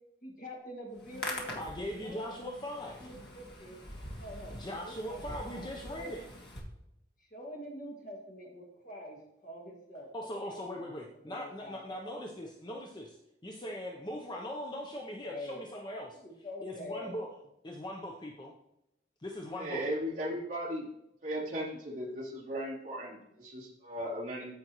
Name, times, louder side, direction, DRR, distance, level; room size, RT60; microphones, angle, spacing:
voice 1, 0.2-1.5 2.0-2.5 3.0-3.8 4.1-4.6 4.8-6.1 7.3-9.2 9.4-10.1 10.4-10.6 11.3-12.0 15.2-15.6 16.2-17.1, equal, 45° left, -1 dB, 2.1 m, -45 dB
Hands, 0.9-6.6, left 1 dB, 65° left, 1.8 m, -44 dB
voice 2, 1.5-3.1 4.5-6.2 10.1-13.2 13.4-16.2 16.6-17.4 17.6-18.5 19.2-19.8, left 1 dB, 25° left, 0 dB, 0.7 m, -40 dB
voice 3, 19.6-20.8 21.2-24.5, equal, 40° right, -6 dB, 3.2 m, -37 dB
14.0 x 5.2 x 3.0 m, 0.83 s
head